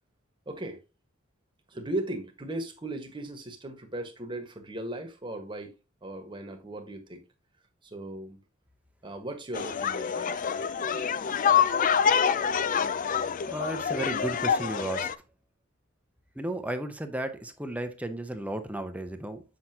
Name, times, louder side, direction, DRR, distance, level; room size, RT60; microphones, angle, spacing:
voice 1, 0.5-0.8 1.7-5.7 6.0-7.2 7.8-8.4 9.0-10.3, right 1 dB, 25° right, 1.4 m, -37 dB
sound 1, 9.5-15.1, left 7 dB, 40° left, 0.4 m, -26 dB
voice 2, 13.5-15.1 16.4-19.4, right 1 dB, 5° right, 0.8 m, -34 dB
7.8 x 5.9 x 2.8 m
head